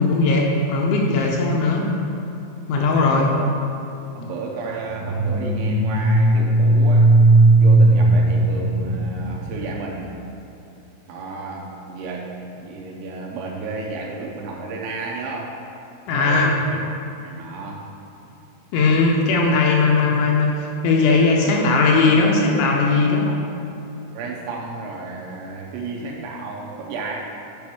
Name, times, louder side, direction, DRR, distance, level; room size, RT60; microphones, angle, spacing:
voice 1, 0.0-2.0 2.7-3.3 16.1-16.6 18.7-23.3, left 3 dB, 85° left, -1 dB, 2.8 m, -18 dB
voice 2, 2.9-3.5 4.2-7.1 7.6-10.2 11.1-15.6 16.1-16.8 17.2-17.9 21.4-21.6 24.1-27.2, right 3 dB, 80° right, -1 dB, 2.7 m, -32 dB
sound 1, 4.8-9.7, right 2 dB, 55° right, 1.2 m, -16 dB
8.6 x 5.1 x 4.7 m, 2.8 s
omnidirectional pair, 5.6 m